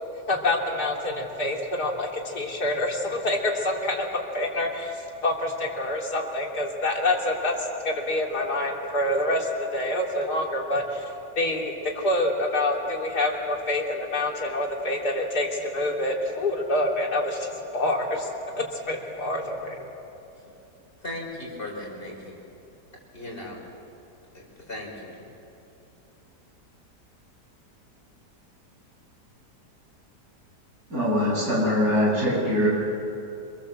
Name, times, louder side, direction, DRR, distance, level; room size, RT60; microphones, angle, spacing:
voice 1, 0.3-4.1 4.3-19.8, left 1 dB, 65° left, -1 dB, 3.6 m, -27 dB
voice 2, 21.0-22.4 23.1-23.6 24.3-25.3, left 1 dB, 30° left, -2 dB, 5.7 m, -37 dB
voice 3, 30.9-32.7, left 1 dB, 60° right, -4 dB, 8.3 m, -22 dB
27.0 x 22.5 x 7.6 m, 2.9 s
omnidirectional pair, 1.8 m